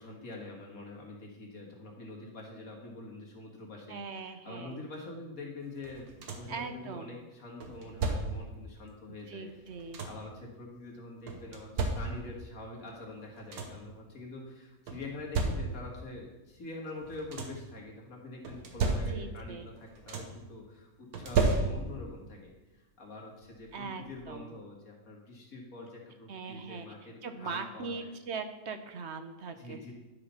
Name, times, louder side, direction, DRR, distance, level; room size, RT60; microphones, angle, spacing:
voice 1, 0.0-9.5 10.0-28.1 29.6-29.9, left 2 dB, 70° left, -1 dB, 2.2 m, -45 dB
voice 2, 3.9-4.8 6.5-7.2 9.3-10.0 18.9-19.7 23.7-24.5 26.3-26.9 27.2-29.9, right 4 dB, 55° right, 8 dB, 0.9 m, -41 dB
sound 1, 5.8-6.6 7.6-8.6 9.5-10.4 11.3-12.5 13.0-13.1 13.3-13.9 14.9-16.0 17.0-17.7 18.4-19.5 19.7-20.5 21.1-22.1 23.4-23.5 24.0-24.2, right 3 dB, 85° right, 1.6 m, -33 dB
10.5 x 5.0 x 5.6 m, 1.1 s
omnidirectional pair, 1.5 m